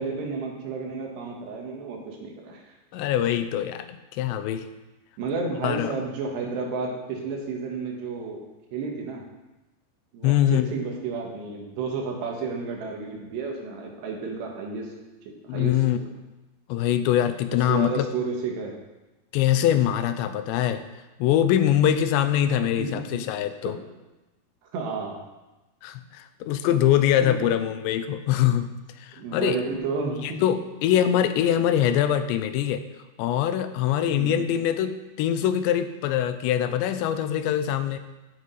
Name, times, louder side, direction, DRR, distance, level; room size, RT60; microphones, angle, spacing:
voice 1, 0.0-2.8 5.2-8.4 8.7-9.2 10.1-14.9 15.5-16.1 17.7-18.8 22.8-23.2 23.7-23.8 24.7-25.2 27.2-27.5 29.1-30.4 34.1-34.5, right 4 dB, 75° right, 0 dB, 3.7 m, -31 dB
voice 2, 2.9-4.7 5.6-5.9 10.2-10.7 15.5-16.0 16.7-18.1 19.3-20.8 21.2-23.8 25.8-28.7 29.0-29.6 30.2-32.8 33.2-38.0, left 10 dB, 85° left, 10 dB, 2.9 m, -23 dB
16.5 x 6.5 x 4.1 m, 1.1 s
omnidirectional pair, 5.0 m